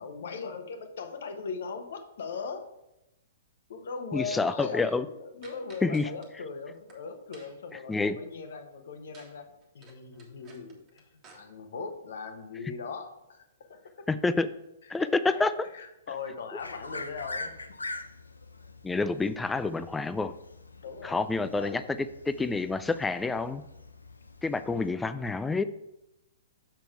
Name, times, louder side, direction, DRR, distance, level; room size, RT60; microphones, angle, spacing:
voice 1, 0.0-2.7 3.7-14.0 14.8-17.5 20.8-21.8, left 5 dB, 60° left, 6 dB, 1.1 m, -40 dB
voice 2, 4.1-5.0 5.8-6.1 7.9-8.1 14.1-14.5 14.9-15.5 18.8-20.3 21.0-21.8 22.3-23.6 24.4-25.6, left 3 dB, 10° left, 12 dB, 0.3 m, -28 dB
sound 1, 5.4-6.3 6.7-7.0 7.3-7.7 9.1-9.4 9.6-11.4, right 4 dB, 25° right, 1.4 m, -54 dB
sound 2, 16.6-24.9, left 2 dB, 80° left, 0.6 m, -44 dB
6.8 x 5.9 x 4.6 m, 0.89 s
figure-of-eight pair, 115°, 0 cm